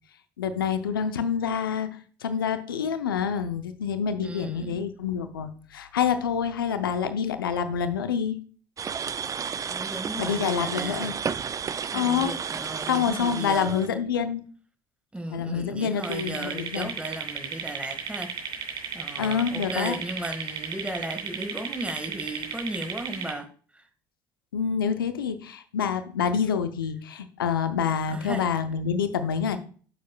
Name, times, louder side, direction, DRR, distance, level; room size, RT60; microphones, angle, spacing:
voice 1, 0.4-8.4 10.2-11.2 11.9-12.3 12.9-14.4 15.3-16.9 19.2-20.0 24.5-29.6, left 7 dB, 90° left, 0.7 m, -27 dB
voice 2, 4.2-4.8 9.7-11.2 11.9-14.0 15.1-23.5 23.7-23.9 28.1-28.5, right 1 dB, 10° right, 1.8 m, -36 dB
sound 1, 8.8-13.9, right 7 dB, 30° right, 0.4 m, -32 dB
sound 2, 16.0-23.3, right 7 dB, 45° right, 2.7 m, -34 dB
9.1 x 7.4 x 2.3 m
hypercardioid pair, 65°, 11 cm